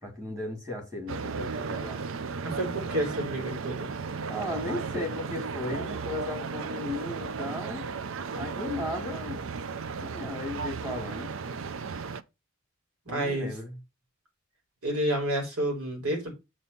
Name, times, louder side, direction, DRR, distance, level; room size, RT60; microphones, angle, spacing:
voice 1, 0.0-2.0 4.3-7.9 8.3-9.4 10.0-11.4 13.1-13.7, left 2 dB, 15° right, 2.2 m, -36 dB
sound 1, 1.1-12.2, right 5 dB, 60° right, 0.5 m, -35 dB
voice 2, 2.4-3.9 13.1-13.5 14.8-16.3, right 1 dB, 85° right, 3.7 m, -29 dB
7.3 x 4.2 x 5.3 m
head